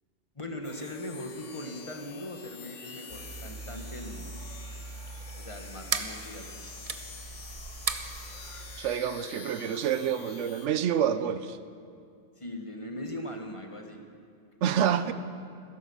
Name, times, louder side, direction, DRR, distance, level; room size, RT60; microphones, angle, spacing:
voice 1, 0.3-4.3 5.4-6.5 12.4-14.0 14.7-15.1, left 1 dB, 25° left, 3 dB, 1.3 m, -40 dB
sound 1, 0.6-10.7, left 6 dB, 80° left, 1.3 m, -47 dB
sound 2, 3.1-8.8, right 4 dB, 35° right, 0.7 m, -38 dB
voice 2, 8.8-11.6 14.6-15.1, right 9 dB, 80° right, 12 dB, 1.0 m, -27 dB
16.0 x 10.5 x 7.0 m, 2.2 s
omnidirectional pair, 1.2 m